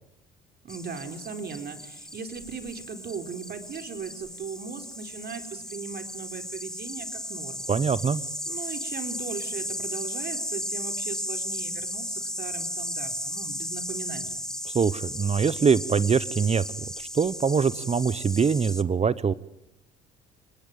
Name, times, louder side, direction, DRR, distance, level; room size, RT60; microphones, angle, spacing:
voice 1, 0.6-7.7 8.5-14.3, right 5 dB, 50° right, 7 dB, 4.1 m, -38 dB
sound 1, 0.7-18.8, left 1 dB, 5° left, 1.5 m, -35 dB
voice 2, 7.7-8.2 14.7-16.6 17.0-19.3, right 6 dB, 30° right, 18 dB, 0.9 m, -23 dB
27.5 x 20.5 x 9.2 m, 0.85 s
supercardioid pair, 70°, 21 cm